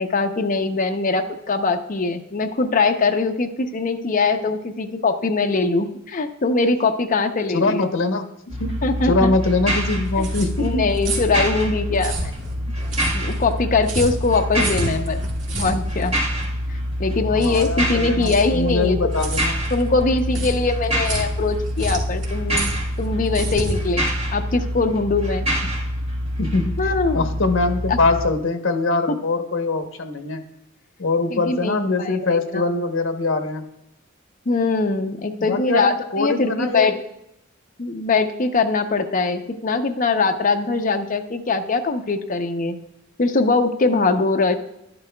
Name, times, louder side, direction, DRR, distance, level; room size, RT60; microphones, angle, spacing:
voice 1, 0.0-7.8 8.8-9.3 10.2-10.3 10.6-12.2 13.1-15.2 15.5-16.2 17.0-19.0 19.7-25.5 26.8-27.3 27.9-28.0 29.1-29.2 31.3-32.3 32.5-32.6 34.5-36.9 37.8-42.8 43.2-44.6, left 3 dB, 40° left, 5 dB, 0.7 m, -22 dB
voice 2, 7.5-8.3 8.6-8.8 9.0-10.9 17.3-19.6 26.4-26.7 27.1-30.4 31.0-33.6 35.4-36.9, left 3 dB, 75° left, 6 dB, 0.9 m, -22 dB
sound 1, 8.5-28.3, equal, 30° right, 1.4 m, -26 dB
sound 2, 9.8-24.9, right 1 dB, 80° right, 2.1 m, -32 dB
11.0 x 11.0 x 2.3 m, 0.83 s
head